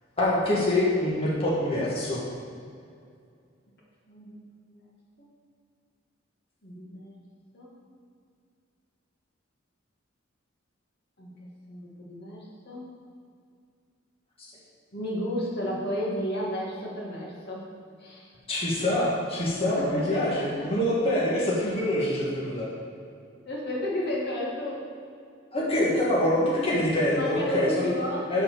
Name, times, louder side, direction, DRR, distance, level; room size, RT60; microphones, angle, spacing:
voice 1, 0.2-2.2 18.5-22.7 25.5-27.9 28.3-28.4, left 1 dB, 30° left, -6 dB, 1.9 m, -25 dB
voice 2, 4.1-4.4 4.7-4.9 5.2-5.3 6.6-7.2 7.5-7.7 11.2-11.3 11.7-13.0 14.9-17.7 18.0-18.3 19.8-20.6 21.6-21.7 23.5-24.8 27.2-28.4, left 1 dB, 55° left, -4 dB, 2.1 m, -32 dB
10.5 x 4.7 x 6.8 m, 2.3 s
head